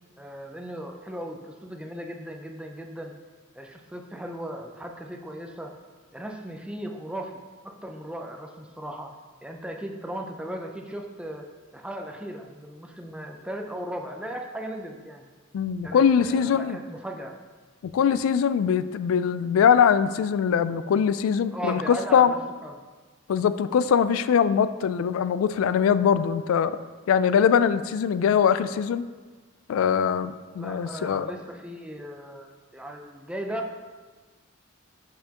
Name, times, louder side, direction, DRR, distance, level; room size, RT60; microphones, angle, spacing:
voice 1, 0.2-3.1 3.5-5.7 6.1-7.3 7.6-9.1 9.4-15.3 15.8-17.3 21.5-22.8 30.6-33.9, right 1 dB, 5° right, 3 dB, 0.4 m, -37 dB
voice 2, 15.5-16.8 17.8-22.3 23.3-26.8 27.1-29.1 29.7-31.3, left 7 dB, 85° left, 14 dB, 0.3 m, -22 dB
6.6 x 5.6 x 2.9 m, 1.4 s
head